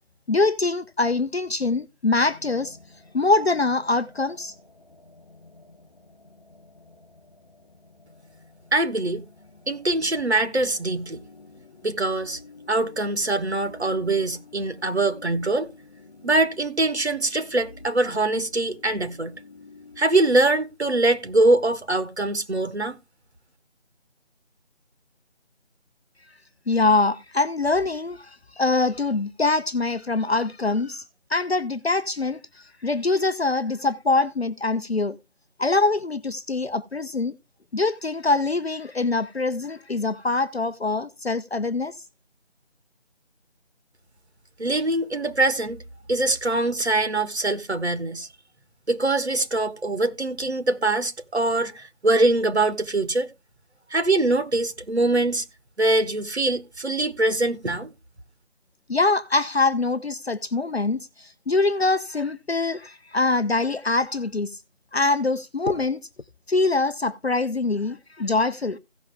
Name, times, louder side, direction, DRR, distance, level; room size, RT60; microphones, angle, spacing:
voice 1, 0.3-2.8 3.1-4.5 26.7-28.3 28.6-31.0 31.3-32.4 32.8-35.2 35.6-37.3 37.7-41.9 58.9-64.5 64.9-66.0 66.5-68.8, left 3 dB, 60° left, 0.7 m, -24 dB
sound 1, 2.2-20.4, left 4 dB, 35° left, 3.4 m, -50 dB
voice 2, 8.7-9.2 9.7-11.2 11.8-12.4 12.7-15.7 16.2-19.3 20.0-23.0 44.6-45.8 46.1-48.3 48.9-53.3 53.9-55.4 55.8-57.9, right 2 dB, 65° right, 1.5 m, -23 dB
16.0 x 6.0 x 3.4 m
figure-of-eight pair, 170°, 36 cm